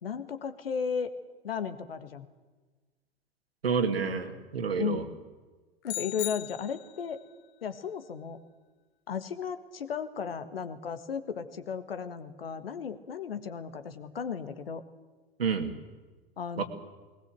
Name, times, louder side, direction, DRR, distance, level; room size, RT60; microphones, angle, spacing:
voice 1, 0.0-1.1 1.4-2.2 4.8-5.1 5.8-7.2 7.6-8.4 9.1-14.8 16.4-16.6, left 6 dB, 75° left, 11 dB, 1.7 m, -35 dB
voice 2, 3.6-5.0 15.4-15.7 16.6-16.7, right 5 dB, 80° right, 7 dB, 2.3 m, -29 dB
sound 1, 5.8-7.2, left 14 dB, 40° left, 1.4 m, -38 dB
20.5 x 19.5 x 7.7 m, 1.3 s
figure-of-eight pair, 90°, 30 cm